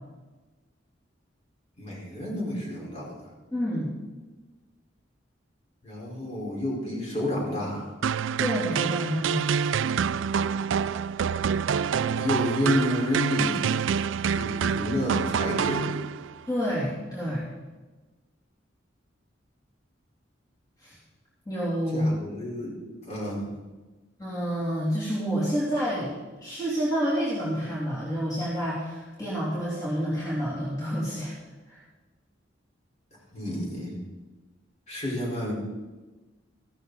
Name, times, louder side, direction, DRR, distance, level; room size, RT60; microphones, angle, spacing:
voice 1, 1.8-3.2 5.8-7.9 12.2-13.6 14.2-15.9 21.9-22.7 23.1-23.5 33.3-33.9 34.9-35.5, left 1 dB, 35° left, -4 dB, 4.5 m, -30 dB
voice 2, 3.5-3.9 8.4-9.4 16.5-17.5 20.8-20.9 21.5-22.2 24.2-26.1 26.4-31.3 31.7-31.8, equal, 20° left, -8 dB, 3.1 m, -28 dB
sound 1, 8.0-16.4, right 7 dB, 80° right, 0.4 m, -27 dB
15.0 x 13.0 x 4.1 m, 1.2 s
head